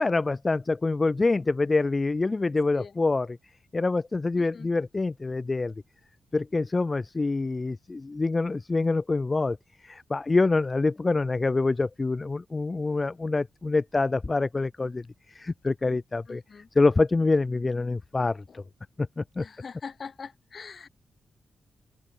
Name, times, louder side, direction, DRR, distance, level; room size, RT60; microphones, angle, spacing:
voice 1, 0.0-3.3 3.7-5.7 6.3-9.6 9.8-16.4 16.8-18.6 19.2-19.5, left 3 dB, 20° left, 0.7 m, -26 dB
voice 2, 2.5-3.0 4.4-4.7 16.3-16.7 18.5-18.7 19.4-20.9, left 5 dB, 40° left, 6.8 m, -43 dB
open air
wide cardioid pair, 175°, 0 cm